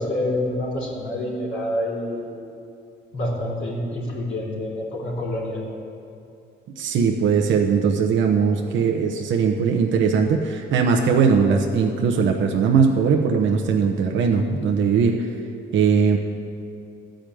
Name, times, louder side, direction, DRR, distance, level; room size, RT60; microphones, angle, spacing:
voice 1, 0.0-2.3 3.1-5.6, left 1 dB, 80° left, -5 dB, 3.1 m, -27 dB
voice 2, 6.8-15.3 15.7-16.2, right 5 dB, 70° right, 2 dB, 0.9 m, -20 dB
13.5 x 5.1 x 9.2 m, 2.6 s
cardioid pair, 90°, 20 cm